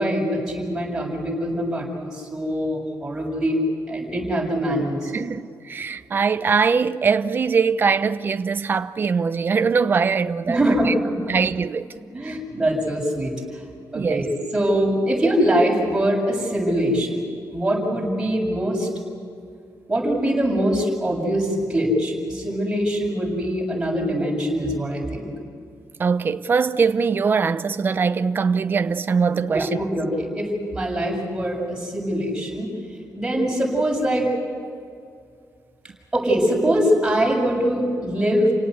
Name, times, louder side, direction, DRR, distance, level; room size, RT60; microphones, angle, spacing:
voice 1, 0.0-3.6 3.9-5.1 10.5-11.1 12.1-13.6 13.9-17.2 17.5-18.9 19.9-25.3 29.5-32.7 33.1-34.3 36.1-38.5, equal, 10° right, 7.2 m, -23 dB
voice 2, 5.1-10.6 10.8-10.9 11.3-11.9 12.2-12.4 13.9-14.2 26.0-29.8, right 5 dB, 35° right, 0.8 m, -22 dB
29.5 x 18.0 x 8.1 m
wide cardioid pair, 155°, 6 cm